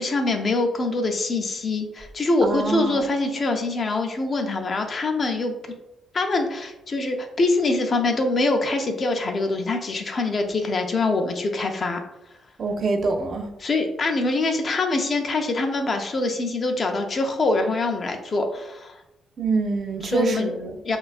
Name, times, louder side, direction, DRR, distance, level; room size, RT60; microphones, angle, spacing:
voice 1, 0.0-5.5 6.1-12.0 13.6-19.0 20.0-20.5 20.8-21.0, left 2 dB, 40° left, 4 dB, 0.3 m, -24 dB
voice 2, 2.4-3.0 12.6-13.5 19.4-20.7, right 3 dB, 50° right, 4 dB, 0.3 m, -25 dB
2.5 x 2.2 x 2.3 m, 0.89 s
cardioid pair, 90°, 0 cm